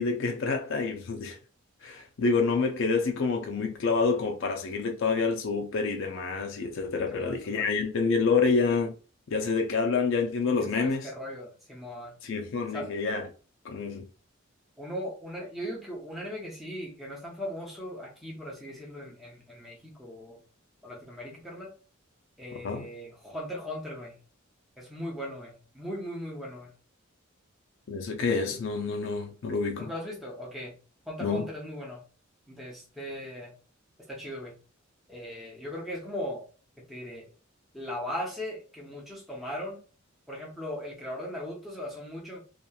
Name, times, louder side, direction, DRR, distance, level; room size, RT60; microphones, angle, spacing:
voice 1, 0.0-1.4 1.8-8.9 9.3-11.1 12.2-13.2 13.6-14.1 22.6-22.9 27.9-29.9 31.2-31.5, left 4 dB, 60° left, 0.4 m, -27 dB
voice 2, 7.1-7.7 10.6-12.1 12.7-12.9 14.8-20.4 20.8-21.7 22.4-24.2 24.8-26.7 29.8-30.7 31.1-32.0 32.5-33.5 34.1-34.5 35.1-36.4 36.9-37.3 37.7-39.8 40.3-42.4, equal, ahead, 0.6 m, -38 dB
2.8 x 2.4 x 2.3 m
head